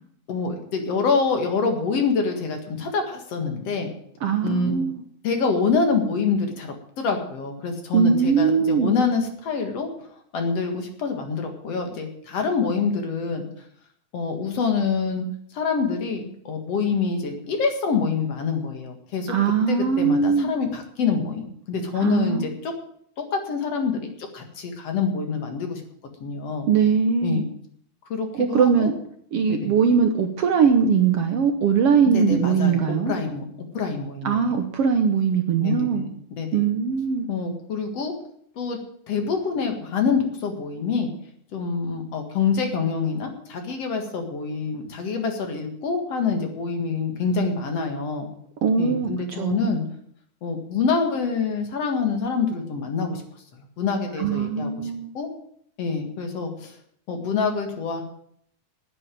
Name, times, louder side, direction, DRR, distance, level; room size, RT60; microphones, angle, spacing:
voice 1, 0.3-3.9 4.4-4.7 5.2-9.9 10.3-13.4 14.1-15.2 15.5-19.4 19.7-22.7 23.2-25.8 26.2-26.7 27.2-27.4 28.1-28.9 29.5-29.8 32.1-33.5 33.7-34.6 35.6-36.1 36.4-36.7 37.3-38.1 38.6-38.8 39.1-41.1 41.5-48.3 48.8-49.8 50.4-53.2 53.8-54.9 55.1-55.3 55.8-56.8 57.1-58.0, left 5 dB, 55° left, 4 dB, 2.7 m, -26 dB
voice 2, 4.2-5.0 7.9-8.9 19.3-20.5 21.9-22.5 26.7-27.4 28.3-28.9 29.3-33.1 34.2-36.1 36.5-37.3 48.6-49.1 49.4-49.7 54.2-55.1, right 6 dB, 65° right, 6 dB, 1.7 m, -21 dB
9.9 x 9.2 x 9.1 m, 0.67 s
omnidirectional pair, 3.5 m